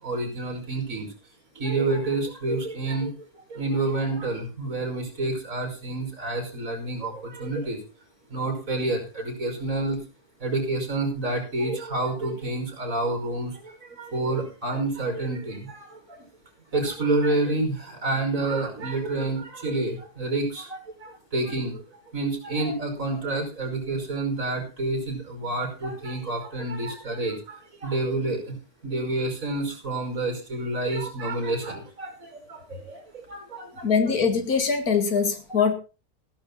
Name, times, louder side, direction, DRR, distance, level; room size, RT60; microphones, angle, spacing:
voice 1, 0.0-1.1 1.5-3.1 3.5-7.8 8.3-10.0 10.4-16.3 16.7-21.8 22.1-28.5 28.8-33.9 35.5-35.6, right 2 dB, 55° right, 3 dB, 6.1 m, -28 dB
voice 2, 33.8-35.7, left 5 dB, 70° left, 8 dB, 2.3 m, -22 dB
16.0 x 12.0 x 4.1 m, 0.32 s
omnidirectional pair, 1.7 m